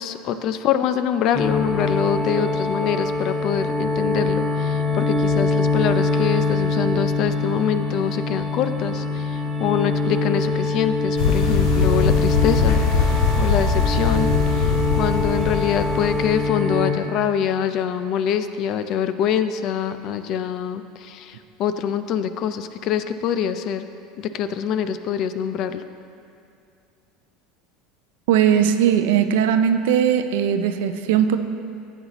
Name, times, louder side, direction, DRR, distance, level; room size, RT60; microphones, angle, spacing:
voice 1, 0.0-23.8 24.2-25.8, left 8 dB, 55° left, 11 dB, 0.4 m, -25 dB
sound 1, 1.3-16.9, left 3 dB, 20° left, 1.5 m, -23 dB
sound 2, 11.2-16.4, left 4 dB, 70° left, 1.0 m, -21 dB
voice 2, 28.3-31.4, right 8 dB, 80° right, 9 dB, 0.5 m, -19 dB
11.0 x 8.1 x 3.0 m, 2.5 s
supercardioid pair, 115°, 0 cm